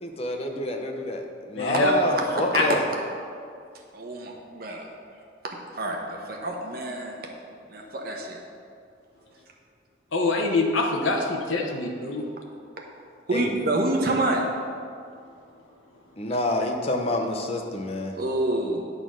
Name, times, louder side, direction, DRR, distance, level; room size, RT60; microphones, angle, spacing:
voice 1, 0.0-2.9 13.3-13.5 16.2-18.1, left 1 dB, 30° left, 3 dB, 0.7 m, -28 dB
voice 2, 1.5-1.9 2.5-2.7 10.1-12.3, left 2 dB, 80° left, 1 dB, 0.9 m, -24 dB
voice 3, 2.3-2.6 3.9-4.9 5.7-7.2 7.7-8.4 13.3-14.4 18.1-18.8, right 2 dB, 50° right, 0 dB, 1.0 m, -27 dB
8.8 x 3.9 x 6.2 m, 2.3 s
head